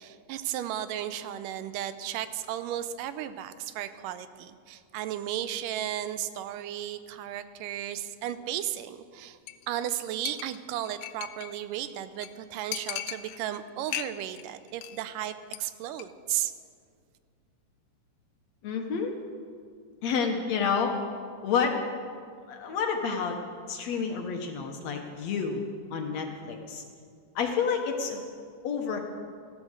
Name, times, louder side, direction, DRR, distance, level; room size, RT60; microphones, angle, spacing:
voice 1, 0.0-9.4 9.7-16.5, right 11 dB, 85° right, 12 dB, 2.2 m, -34 dB
Chink clink, 9.5-9.7 9.9-10.0 10.3-11.6 11.9-12.0 12.2-12.3 12.7-13.6 13.9-14.4 14.7-15.0 15.2-15.6 15.9-16.0, left 12 dB, 80° left, 1.9 m, -37 dB
voice 2, 18.6-19.1 20.0-20.9 21.4-21.8 22.5-23.4 23.7-25.6 25.9-26.8 27.4-28.2 28.6-29.0, left 6 dB, 65° left, 3 dB, 2.0 m, -29 dB
15.0 x 12.5 x 6.5 m, 2.2 s
omnidirectional pair, 3.8 m